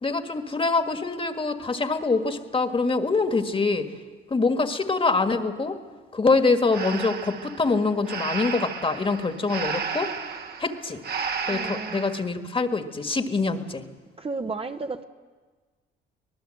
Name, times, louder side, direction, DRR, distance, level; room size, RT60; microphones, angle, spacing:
voice 1, 0.0-3.9 4.3-5.8 6.1-10.1 10.6-11.0 11.5-13.8, left 3 dB, 25° left, 1.7 m, -24 dB
Breathing, 6.7-12.2, right 5 dB, 50° right, 1.6 m, -33 dB
voice 2, 11.5-12.0 14.2-15.0, right 3 dB, 30° right, 1.0 m, -33 dB
25.0 x 19.0 x 7.7 m
cardioid pair, 90°, 20 cm